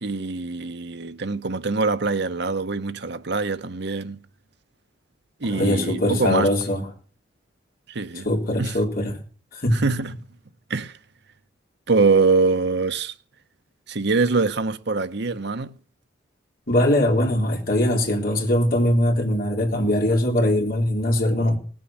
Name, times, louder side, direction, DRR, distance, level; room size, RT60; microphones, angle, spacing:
voice 1, 0.0-4.2 5.4-6.5 7.9-8.3 8.6-8.7 9.7-10.1 10.7-10.9 11.9-13.1 13.9-15.7 21.3-21.4, right 4 dB, 65° right, 1.0 m, -23 dB
voice 2, 5.4-6.9 8.1-9.2 9.5-9.8 16.7-21.6, left 1 dB, 50° left, 3.8 m, -21 dB
18.5 x 7.7 x 7.6 m
head